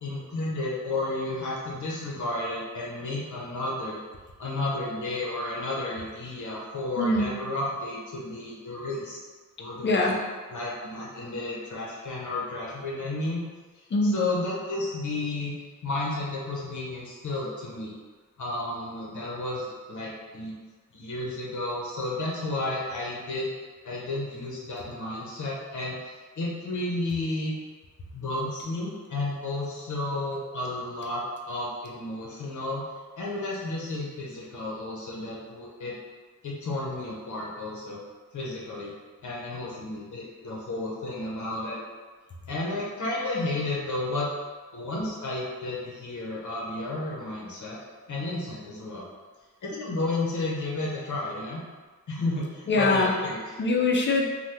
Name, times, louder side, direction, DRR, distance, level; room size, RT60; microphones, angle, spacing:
voice 1, 0.0-4.0 4.4-9.2 9.6-10.2 10.5-13.4 14.0-15.5 15.8-17.9 18.4-20.5 20.9-23.5 23.8-27.5 28.1-32.8 33.2-36.0 36.4-38.0 38.3-38.9 39.2-41.8 42.5-44.3 44.7-47.8 48.1-49.1 49.6-51.6 52.1-53.6, left 2 dB, 70° left, -4 dB, 0.7 m, -32 dB
voice 2, 7.0-7.3 9.8-10.1 13.9-14.2 52.7-53.1 53.6-54.2, left 2 dB, 35° left, 0 dB, 0.4 m, -22 dB
2.8 x 2.2 x 3.3 m, 1.4 s
wide cardioid pair, 145°, 32 cm